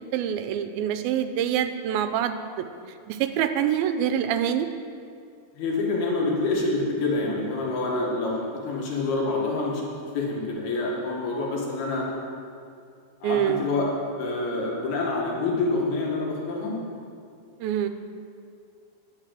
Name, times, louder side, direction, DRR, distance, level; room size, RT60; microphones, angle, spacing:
voice 1, 0.1-2.7 3.1-4.7 13.2-13.6 17.6-17.9, right 9 dB, 85° right, 9 dB, 2.4 m, -25 dB
voice 2, 5.5-9.8 10.1-12.1 13.2-13.9 14.2-16.8, left 3 dB, 90° left, -3 dB, 3.8 m, -27 dB
10.5 x 8.0 x 7.6 m, 2.4 s
omnidirectional pair, 4.3 m